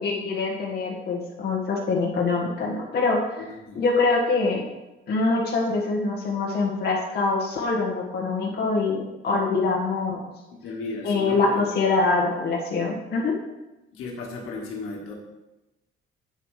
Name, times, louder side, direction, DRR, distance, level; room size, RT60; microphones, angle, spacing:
voice 1, 0.0-3.5 3.7-4.7 5.1-10.3 11.0-13.3, left 3 dB, 50° left, -3 dB, 1.7 m, -24 dB
voice 2, 3.4-3.8 10.5-11.6 13.9-15.1, left 3 dB, 90° left, -1 dB, 1.7 m, -35 dB
8.3 x 7.5 x 3.3 m, 1.0 s
cardioid pair, 160°, 21 cm